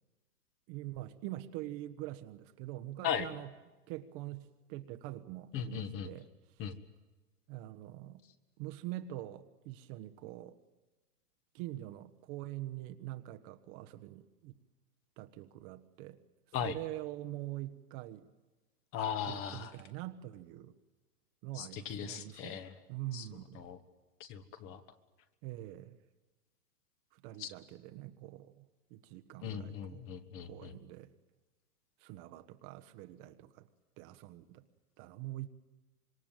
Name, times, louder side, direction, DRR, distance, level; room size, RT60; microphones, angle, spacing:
voice 1, 0.7-3.5 3.9-6.3 7.5-8.2 8.6-10.6 11.5-14.5 15.2-16.2 16.6-18.3 19.2-20.7 21.4-23.6 25.4-26.0 27.1-30.1 30.4-31.1 32.0-33.7 34.0-34.6 35.0-35.5, right 15 dB, 35° right, 1.3 m, -44 dB
voice 2, 5.5-6.1 6.6-6.8 16.5-16.7 18.9-19.7 21.5-22.8 23.1-23.3 23.5-23.8 24.2-24.8 27.4-27.5 29.4-30.7, left 8 dB, 30° left, 1.5 m, -38 dB
26.0 x 22.0 x 9.1 m
hypercardioid pair, 140°, 48 cm